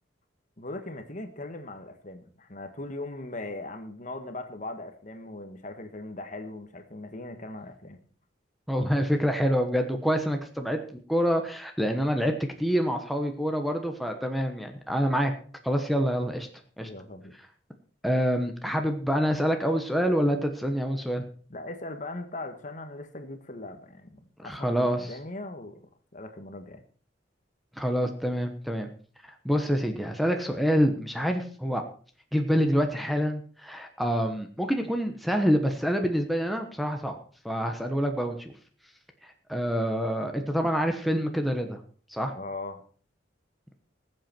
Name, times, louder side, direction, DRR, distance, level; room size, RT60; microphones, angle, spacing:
voice 1, 0.6-8.0 16.8-17.4 21.5-25.8 26.1-26.8 42.3-42.8, left 2 dB, 40° left, 7 dB, 1.5 m, -39 dB
voice 2, 8.7-10.8 11.1-12.3 12.6-15.3 15.6-16.5 16.8-16.9 18.0-21.2 24.4-25.1 27.8-28.9 29.4-31.8 32.3-37.2 37.4-38.5 39.2-41.8 42.1-42.3, equal, ahead, 4 dB, 1.1 m, -26 dB
20.0 x 7.9 x 4.5 m, 0.43 s
head